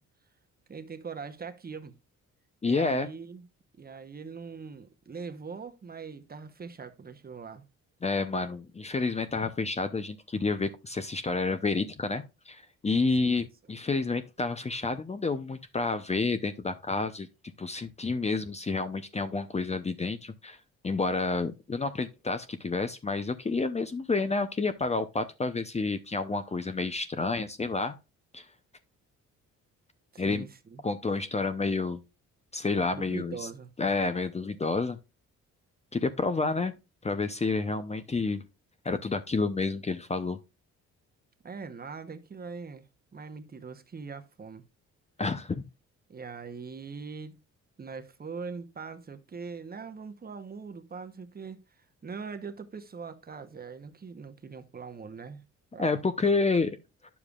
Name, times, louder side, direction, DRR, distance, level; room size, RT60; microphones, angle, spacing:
voice 1, 0.7-1.9 2.6-3.5 3.7-7.6 13.2-13.3 30.1-30.8 32.9-33.7 41.4-42.9 43.1-44.7 46.1-47.4 47.8-55.4 55.7-56.0, right 5 dB, 30° right, 1.0 m, -42 dB
voice 2, 2.6-3.1 8.0-17.3 17.6-20.6 20.8-27.9 28.3-28.5 30.2-30.5 30.8-32.0 32.5-33.4 33.8-35.0 35.9-36.7 37.0-38.4 38.8-40.4 45.2-45.6 55.8-56.8, left 3 dB, 20° left, 0.7 m, -29 dB
9.7 x 7.1 x 2.4 m
cardioid pair, 90°, 30 cm